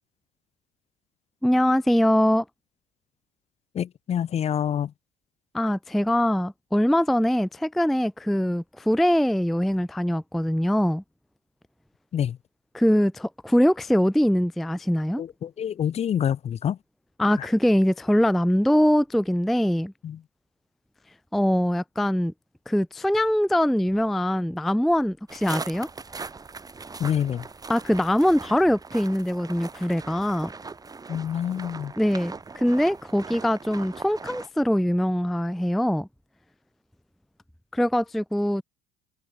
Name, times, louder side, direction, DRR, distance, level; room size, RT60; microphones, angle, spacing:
voice 1, 1.4-2.5 5.5-11.0 12.7-15.2 17.2-19.9 21.3-22.3 22.7-25.9 27.7-30.5 32.0-36.1 37.7-38.6, equal, ahead, 0.3 m, -22 dB
voice 2, 3.7-4.9 12.1-12.4 15.2-16.8 17.4-17.5 20.0-20.2 27.0-27.5 31.1-31.9, left 9 dB, 35° left, 0.7 m, -27 dB
sound 1, 25.3-34.5, right 4 dB, 20° right, 2.2 m, -40 dB
supercardioid pair, 80°, 18 cm